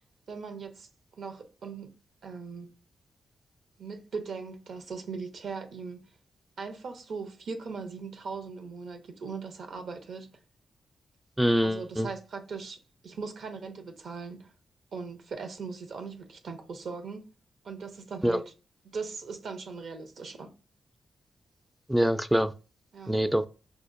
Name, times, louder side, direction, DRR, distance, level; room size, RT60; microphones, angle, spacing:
voice 1, 0.3-0.9 1.2-1.9 2.2-2.7 3.8-6.0 6.6-10.3 11.6-14.5 14.9-17.2 17.6-18.5 18.9-20.5 22.9-23.2, right 4 dB, 75° right, 0.6 m, -39 dB
voice 2, 11.4-12.1 18.2-18.4 21.9-22.5 23.1-23.5, equal, 5° right, 0.3 m, -24 dB
5.0 x 2.1 x 2.5 m
cardioid pair, 55°, 0 cm